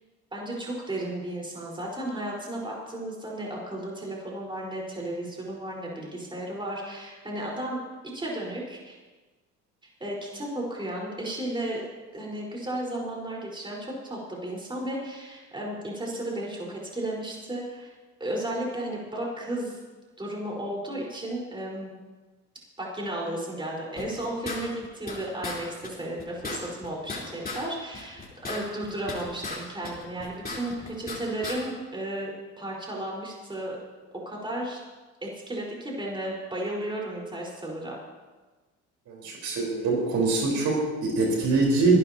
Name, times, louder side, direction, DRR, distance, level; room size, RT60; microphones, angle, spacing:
voice 1, 0.3-7.8 8.1-9.0 10.0-11.8 12.1-17.9 18.2-19.8 20.2-21.9 22.8-33.8 34.2-34.8 35.2-38.0, right 1 dB, 15° right, -3 dB, 4.8 m, -34 dB
sound 1, 24.0-25.2 25.4-25.6 25.8-25.9 26.2-27.6 27.9-29.6 29.8-31.2 31.4-31.6, left 3 dB, 25° left, 4.2 m, -35 dB
voice 2, 39.1-42.0, right 3 dB, 65° right, -2 dB, 4.7 m, -24 dB
26.0 x 12.0 x 3.0 m, 1.2 s
supercardioid pair, 90°, 33 cm